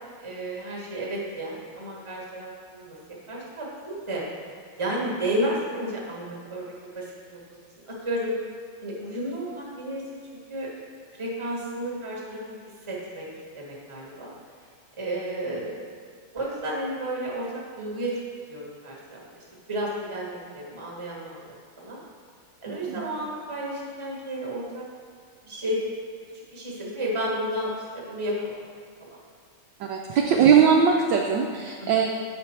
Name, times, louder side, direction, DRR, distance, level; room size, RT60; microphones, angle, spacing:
voice 1, 0.2-3.0 3.3-4.2 4.8-6.6 6.9-7.4 7.9-8.3 8.8-10.0 10.5-10.7 11.1-12.6 12.9-13.3 13.5-14.3 15.0-15.9 16.3-17.5 17.8-18.1 18.5-21.4 21.8-22.0 22.6-24.8 25.5-25.8 26.5-28.5 31.8-32.1, right 1 dB, 15° right, -4 dB, 1.1 m, -32 dB
voice 2, 22.7-23.0 29.8-32.1, right 7 dB, 75° right, 2 dB, 1.0 m, -20 dB
7.8 x 5.2 x 4.3 m, 2.1 s
omnidirectional pair, 2.4 m